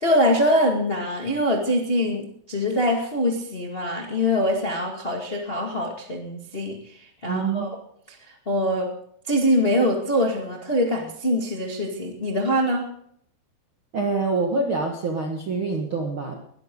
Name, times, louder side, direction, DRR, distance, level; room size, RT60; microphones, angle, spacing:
voice 1, 0.0-7.7 8.4-8.9 9.3-12.8, equal, 80° left, 0 dB, 0.5 m, -23 dB
voice 2, 7.2-7.7 13.9-16.3, right 3 dB, 65° right, 1 dB, 1.2 m, -25 dB
21.0 x 13.0 x 3.8 m, 0.67 s
omnidirectional pair, 5.1 m